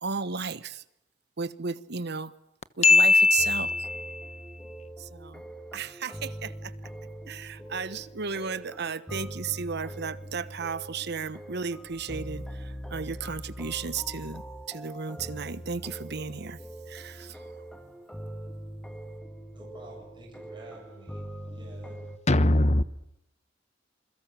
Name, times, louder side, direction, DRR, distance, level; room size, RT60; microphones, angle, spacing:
voice 1, 0.0-0.8 1.4-2.3 2.8-3.7 5.0-5.4 5.7-6.7 7.3-16.6 16.9-17.4, right 5 dB, 60° right, 1.1 m, -34 dB
voice 2, 2.8-4.4 22.3-22.8, left 3 dB, 35° left, 1.1 m, -21 dB
sound 1, 3.4-22.2, equal, 5° left, 2.1 m, -42 dB
voice 3, 19.5-22.0, right 1 dB, 25° right, 7.6 m, -49 dB
27.5 x 22.0 x 7.5 m
head